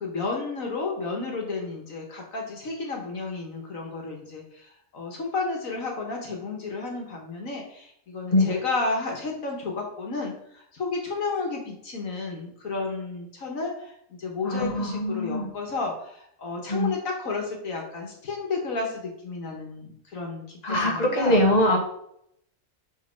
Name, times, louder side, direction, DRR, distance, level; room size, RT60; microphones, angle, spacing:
voice 1, 0.0-21.4, left 3 dB, 70° left, 0 dB, 1.8 m, -32 dB
voice 2, 14.4-15.5 16.7-16.9 20.6-21.8, left 1 dB, 30° left, -1 dB, 1.6 m, -22 dB
5.3 x 5.0 x 5.9 m, 0.71 s
omnidirectional pair, 1.5 m